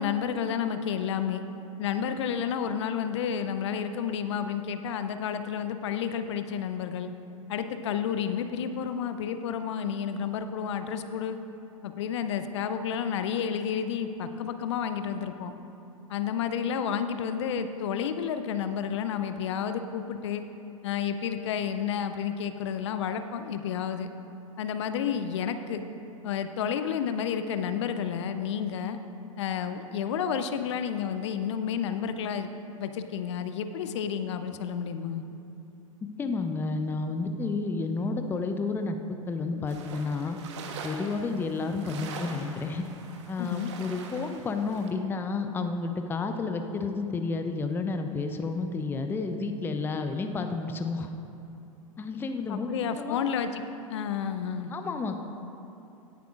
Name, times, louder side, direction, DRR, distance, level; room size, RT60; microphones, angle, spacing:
voice 1, 0.0-1.4 1.8-7.1 7.5-11.4 11.8-15.5 16.1-20.4 20.8-24.1 24.6-25.8 26.2-29.0 29.4-32.5 32.8-35.2 43.4-43.7 52.5-54.7, left 8 dB, 55° left, 9 dB, 0.6 m, -31 dB
voice 2, 36.2-39.0 39.3-40.4 40.8-42.8 43.3-51.1 52.0-52.7 53.0-53.2 54.7-55.2, left 4 dB, 10° left, 6 dB, 0.5 m, -31 dB
sound 1, 39.7-44.9, right 4 dB, 55° right, 1.1 m, -43 dB
17.0 x 10.5 x 2.5 m, 2.8 s
figure-of-eight pair, 95°, 18 cm